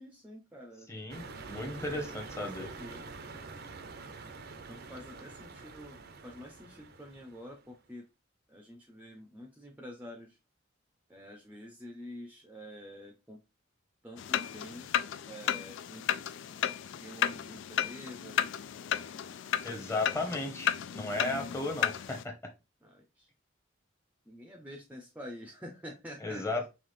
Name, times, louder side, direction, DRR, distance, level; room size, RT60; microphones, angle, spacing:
voice 1, 0.0-3.0 4.7-8.1 8.5-10.4 11.1-13.4 14.0-16.1 17.0-18.6 19.2-20.1 22.8-23.3 24.3-26.5, equal, 10° right, 2 dB, 0.6 m, -48 dB
voice 2, 0.9-2.7 19.6-22.3 26.2-26.7, left 2 dB, 15° left, 3 dB, 0.9 m, -35 dB
sound 1, 1.1-7.7, right 4 dB, 50° right, 0.6 m, -46 dB
sound 2, 14.2-22.2, left 9 dB, 65° left, 0.3 m, -33 dB
5.6 x 2.4 x 3.2 m, 0.26 s
head